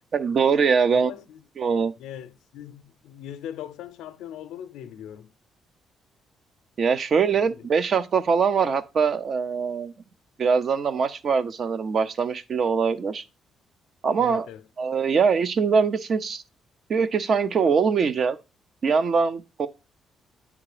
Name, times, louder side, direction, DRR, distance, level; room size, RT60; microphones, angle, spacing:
voice 1, 0.1-1.1 1.6-1.9 6.8-9.9 10.4-13.2 14.0-14.5 14.8-16.4 16.9-18.4 18.8-19.7, right 5 dB, 55° right, 0.7 m, -22 dB
voice 2, 0.9-1.4 2.0-5.3 14.2-14.6, left 10 dB, 90° left, 0.6 m, -40 dB
8.9 x 3.6 x 4.9 m
cardioid pair, 90°, 0 cm